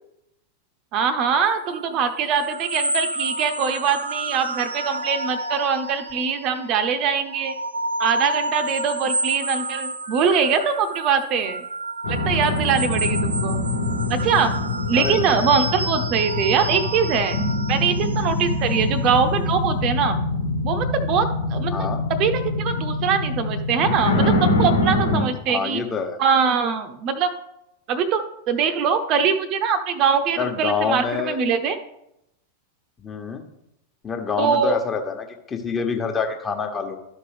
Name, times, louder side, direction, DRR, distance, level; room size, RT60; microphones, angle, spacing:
voice 1, 0.9-7.5 8.0-11.6 12.1-13.6 14.1-14.5 14.9-17.4 17.7-20.2 20.6-25.8 26.2-27.3 27.9-31.8 34.4-34.8, right 6 dB, 40° right, 8 dB, 0.8 m, -22 dB
sound 1, 1.5-6.7 7.2-19.5, right 2 dB, 80° right, 0.7 m, -30 dB
sound 2, 12.0-25.2, left 2 dB, 70° left, 1.5 m, -24 dB
voice 2, 14.9-15.4 18.7-19.0 21.7-22.0 25.5-26.2 30.4-31.4 33.0-33.4 34.0-37.0, left 5 dB, 20° left, 4 dB, 1.3 m, -27 dB
13.0 x 5.3 x 3.4 m, 0.82 s
figure-of-eight pair, 90°, 0 cm